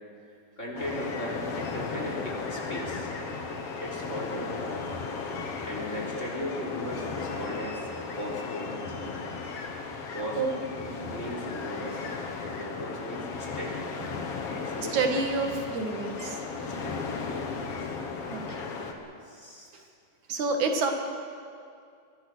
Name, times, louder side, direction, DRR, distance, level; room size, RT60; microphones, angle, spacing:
voice 1, 0.6-3.1 3.8-4.8 5.6-7.8 8.2-9.1 10.1-12.0 12.4-13.9 14.5-15.0 16.6-17.7 19.3-19.8, equal, 25° left, -2 dB, 4.3 m, -37 dB
sound 1, 0.8-18.9, left 4 dB, 55° left, 2.6 m, -35 dB
voice 2, 14.8-16.4 18.3-18.6 20.3-20.9, right 4 dB, 80° right, 3 dB, 3.2 m, -28 dB
24.5 x 21.0 x 6.3 m, 2.3 s
omnidirectional pair, 3.4 m